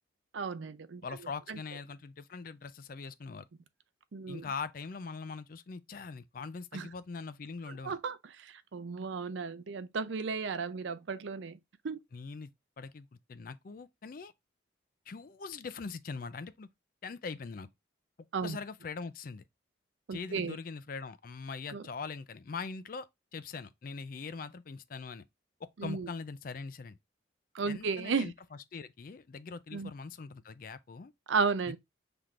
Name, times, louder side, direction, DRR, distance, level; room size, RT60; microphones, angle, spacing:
voice 1, 0.3-1.0 1.5-1.6 4.1-4.4 6.7-6.9 7.8-11.6 11.8-12.0 18.3-18.6 20.1-20.6 21.7-21.8 25.8-26.1 27.5-28.3 29.7-29.9 31.3-31.8, right 5 dB, 75° right, 0.5 m, -34 dB
voice 2, 1.0-3.4 4.3-8.0 12.1-12.5 12.8-14.3 15.1-16.7 17.0-17.7 18.4-19.4 20.1-25.2 25.6-27.0 27.7-28.3 28.7-31.1, left 4 dB, 45° left, 0.4 m, -42 dB
5.8 x 3.4 x 2.4 m
head